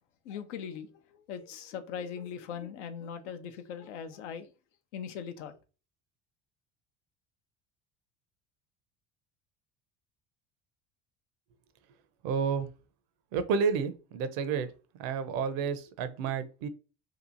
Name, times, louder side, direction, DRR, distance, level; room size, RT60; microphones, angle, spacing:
voice 1, 0.2-4.5 4.9-5.5, left 7 dB, 85° left, 0.5 m, -40 dB
voice 2, 12.2-12.7 13.3-14.7 15.0-16.7, right 6 dB, 70° right, 0.6 m, -30 dB
2.8 x 2.4 x 2.5 m
hypercardioid pair, 70°, 35 cm